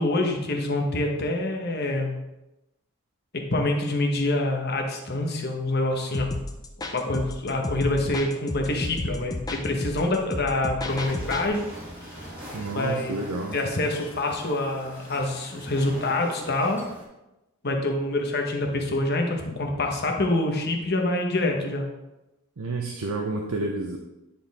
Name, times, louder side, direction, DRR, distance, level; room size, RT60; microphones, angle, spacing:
voice 1, 0.0-2.1 3.3-6.3 6.9-11.6 12.0-12.1 12.7-13.2 13.5-16.8 17.6-21.8, left 2 dB, 45° left, 2 dB, 1.1 m, -26 dB
sound 1, 6.1-11.5, left 2 dB, 15° left, 0.5 m, -33 dB
sound 2, 10.9-17.0, equal, 5° right, 2.2 m, -42 dB
voice 2, 12.5-13.6 22.6-24.0, right 2 dB, 80° right, 1 dB, 0.7 m, -30 dB
9.7 x 4.3 x 3.5 m, 0.96 s
head